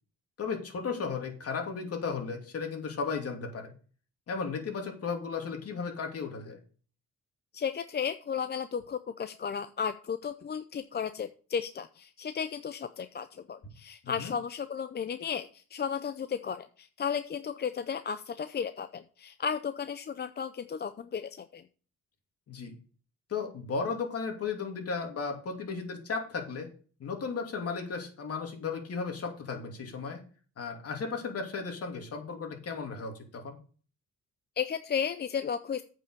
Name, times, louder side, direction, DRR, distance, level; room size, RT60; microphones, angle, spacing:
voice 1, 0.4-3.7 4.3-6.6 14.0-14.3 22.5-22.7 23.3-26.7 27.0-30.2 30.6-33.6, left 5 dB, 50° left, 3 dB, 2.9 m, -35 dB
voice 2, 7.5-21.6 34.6-35.8, left 7 dB, 35° left, 11 dB, 0.6 m, -34 dB
8.9 x 5.6 x 6.7 m, 0.41 s
cardioid pair, 90°, 30 cm